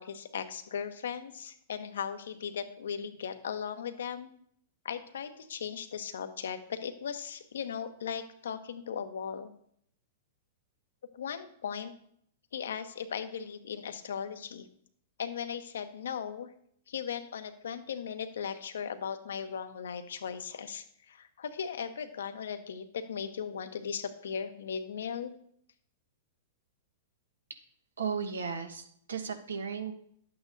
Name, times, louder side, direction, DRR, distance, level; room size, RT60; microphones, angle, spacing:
voice 1, 0.0-4.3 4.8-9.5 11.1-11.9 12.5-14.7 15.2-16.5 16.9-25.3, left 7 dB, 75° left, 9 dB, 0.9 m, -37 dB
voice 2, 28.0-29.9, right 6 dB, 85° right, 6 dB, 1.3 m, -35 dB
11.5 x 8.6 x 2.7 m, 0.67 s
hypercardioid pair, 110°, 0 cm